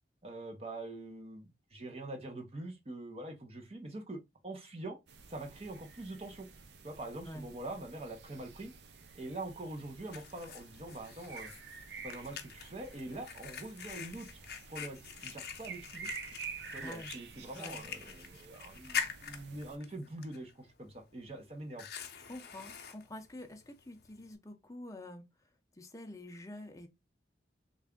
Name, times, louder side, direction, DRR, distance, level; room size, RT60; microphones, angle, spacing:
voice 1, 0.2-5.0 5.3-6.5 6.8-8.7 9.1-11.5 12.0-14.3 14.7-16.1 16.7-21.9, right 2 dB, 35° right, 0.7 m, -44 dB
sound 1, 5.1-19.8, right 6 dB, 75° right, 0.5 m, -50 dB
Fire, 9.4-24.4, left 7 dB, 60° left, 0.6 m, -45 dB
voice 2, 16.8-17.2 17.6-17.9 22.3-25.3 25.7-26.9, left 1 dB, 20° left, 0.6 m, -47 dB
3.3 x 2.5 x 3.5 m
head